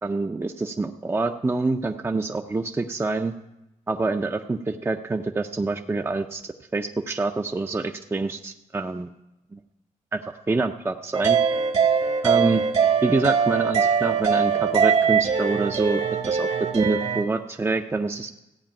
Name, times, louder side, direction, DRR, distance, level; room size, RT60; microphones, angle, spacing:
voice 1, 0.0-3.3 3.9-6.4 6.7-9.1 9.5-9.6 10.1-11.4 12.2-12.6 13.0-16.0 16.3-16.5 16.7-18.3, right 3 dB, 20° right, 5 dB, 0.5 m, -26 dB
sound 1, 11.1-17.2, right 6 dB, 50° right, 1.2 m, -22 dB
14.5 x 5.1 x 8.9 m, 0.94 s
wide cardioid pair, 110°, 13 cm